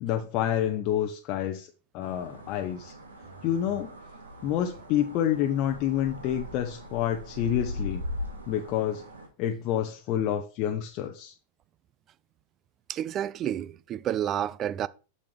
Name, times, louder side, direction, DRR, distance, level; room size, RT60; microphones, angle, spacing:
voice 1, 0.0-1.7 1.9-2.9 3.4-3.9 4.4-8.0 8.5-9.0 9.4-11.3, left 10 dB, 45° left, 0.7 m, -28 dB
sound 1, 2.0-9.3, left 1 dB, 75° right, 1.6 m, -40 dB
voice 2, 12.9-14.9, right 11 dB, 35° right, 0.4 m, -30 dB
6.9 x 6.4 x 3.3 m
figure-of-eight pair, 90°, 0 cm